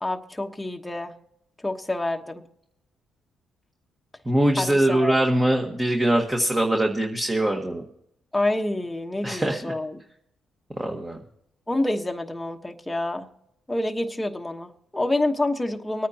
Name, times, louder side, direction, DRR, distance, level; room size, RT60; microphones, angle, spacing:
voice 1, 0.0-1.1 1.6-2.4 4.6-5.1 8.3-10.0 11.7-13.3 13.7-16.1, left 2 dB, 10° left, 2 dB, 1.2 m, -27 dB
voice 2, 4.2-7.8 9.2-9.7 10.8-11.2, right 1 dB, 15° right, 2 dB, 1.6 m, -22 dB
25.5 x 9.3 x 2.9 m, 0.76 s
cardioid pair, 90°, 0 cm